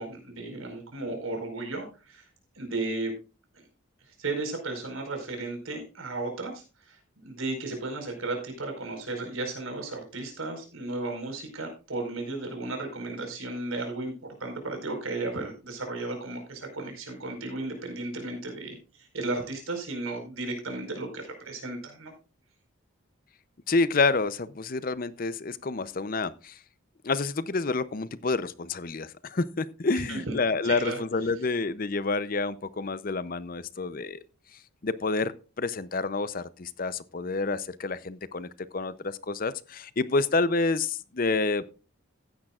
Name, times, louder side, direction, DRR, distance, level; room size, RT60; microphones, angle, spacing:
voice 1, 0.0-2.3 2.5-3.2 3.5-3.6 4.1-22.1 29.9-30.4 30.6-31.0, right 2 dB, 85° right, 4.8 m, -34 dB
voice 2, 23.7-26.6 27.0-34.2 34.8-41.6, left 3 dB, 45° left, 0.6 m, -28 dB
15.5 x 10.0 x 2.4 m
head